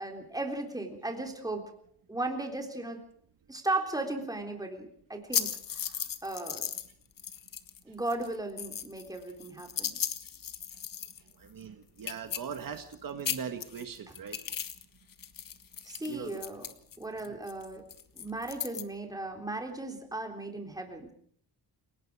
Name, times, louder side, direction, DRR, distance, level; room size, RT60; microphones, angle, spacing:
voice 1, 0.0-1.6 2.1-3.0 3.5-6.7 7.8-10.0 14.1-14.2 15.8-16.7 17.0-17.9 18.1-21.1, right 2 dB, 10° right, 3 dB, 3.6 m, -36 dB
sound 1, 5.3-6.9 7.2-7.8 8.1-11.3 11.6-11.7 12.0-12.9 13.2-14.8 15.1-18.8, left 9 dB, 55° left, 1.5 m, -36 dB
voice 2, 11.4-14.4 16.1-16.4, right 7 dB, 55° right, 7 dB, 1.8 m, -40 dB
30.0 x 18.5 x 4.9 m, 0.62 s
wide cardioid pair, 170°, 39 cm